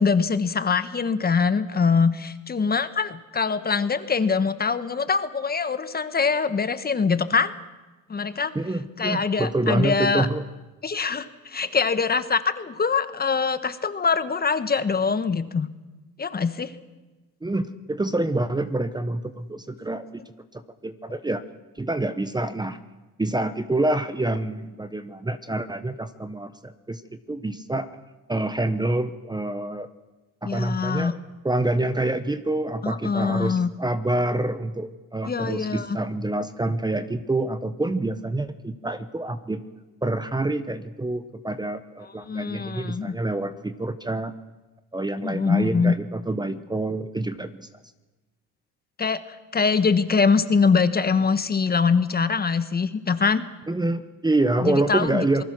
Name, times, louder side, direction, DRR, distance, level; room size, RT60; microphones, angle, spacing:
voice 1, 0.0-7.5 8.1-8.5 9.0-10.3 10.8-15.7 16.2-16.7 30.4-31.1 32.8-33.7 35.3-36.0 42.3-43.1 45.2-45.9 49.0-49.2 49.5-53.4 54.6-55.4, left 5 dB, 25° left, 12 dB, 1.3 m, -23 dB
voice 2, 8.5-10.4 17.4-20.0 20.5-21.4 21.8-22.8 23.2-27.9 28.3-29.9 30.4-31.2 31.4-39.6 40.0-44.3 44.9-47.7 53.7-55.4, right 2 dB, 10° right, 11 dB, 1.1 m, -27 dB
27.5 x 19.5 x 6.2 m, 1.2 s
supercardioid pair, 95°, 36 cm